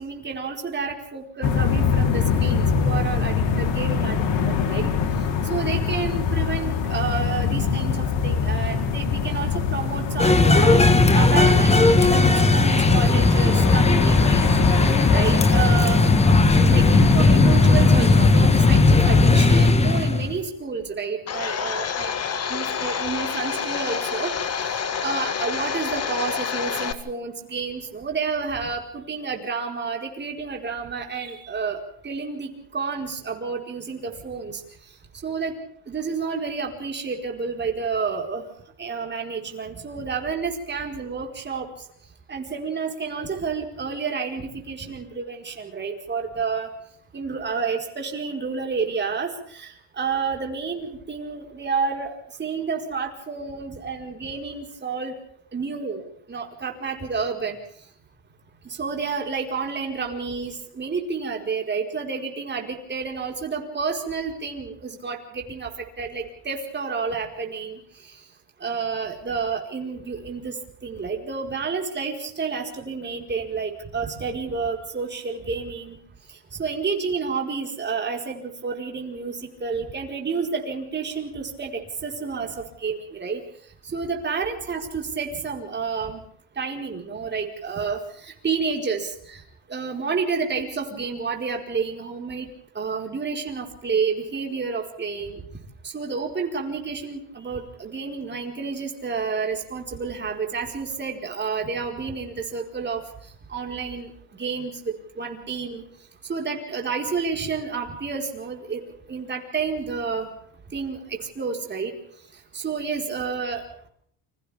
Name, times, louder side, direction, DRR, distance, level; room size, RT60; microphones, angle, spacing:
voice 1, 0.0-4.2 4.4-4.9 5.5-10.8 11.1-14.8 15.1-16.0 16.7-22.1 22.5-24.3 24.7-34.6 35.2-35.5 35.9-38.4 38.8-41.7 42.3-46.7 47.1-55.1 55.5-57.6 58.6-65.7 66.0-67.8 68.6-70.5 70.8-76.0 76.6-83.4 83.8-86.2 86.6-89.4 89.7-92.5 92.7-95.4 95.8-103.0 103.5-105.8 106.3-108.8 109.1-110.3 110.7-111.9 112.5-113.6, right 5 dB, 25° right, 2 dB, 4.8 m, -30 dB
sound 1, 1.4-19.7, left 6 dB, 85° left, 3.9 m, -24 dB
sound 2, 10.2-20.4, left 2 dB, 15° left, 1.5 m, -17 dB
Domestic sounds home sounds, 21.3-26.9, left 7 dB, 35° left, 1.8 m, -28 dB
29.5 x 26.5 x 3.6 m, 0.64 s
cardioid pair, 145°, 43 cm